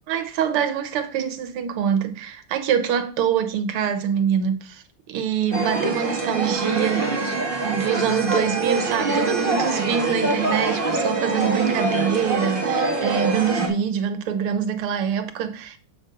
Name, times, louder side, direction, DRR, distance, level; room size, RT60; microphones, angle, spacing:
voice 1, 0.1-15.8, right 8 dB, 85° right, 1.8 m, -25 dB
sound 1, 5.5-13.7, right 3 dB, 30° right, 1.4 m, -24 dB
6.5 x 5.7 x 3.8 m
omnidirectional pair, 2.4 m